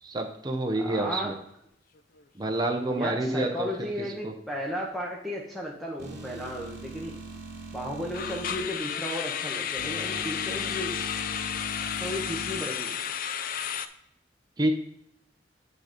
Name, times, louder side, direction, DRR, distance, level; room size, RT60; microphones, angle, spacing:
voice 1, 0.0-1.4 2.3-3.9 4.2-4.3 14.6-14.7, right 1 dB, 25° right, 3 dB, 0.8 m, -28 dB
voice 2, 0.8-1.3 2.9-7.1 7.7-11.2 12.0-13.0, equal, ahead, -2 dB, 1.0 m, -34 dB
sound 1, 2.0-2.2 2.5-2.7 3.2-3.3 8.1-13.9, left 8 dB, 50° left, 0.5 m, -32 dB
sound 2, 6.0-8.7 9.7-12.6, equal, 60° right, 2.5 m, -40 dB
9.2 x 3.9 x 5.1 m, 0.74 s
head